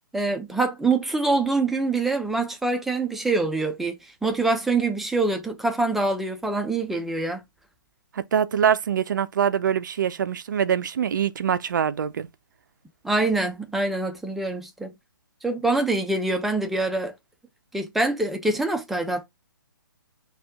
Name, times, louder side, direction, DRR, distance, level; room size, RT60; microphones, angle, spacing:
voice 1, 0.1-7.4 13.0-14.9 15.4-17.1 17.7-19.2, right 3 dB, ahead, 0.5 m, -25 dB
voice 2, 8.1-12.3, right 8 dB, 60° right, 0.5 m, -24 dB
4.1 x 2.4 x 3.5 m
figure-of-eight pair, 130°, 12 cm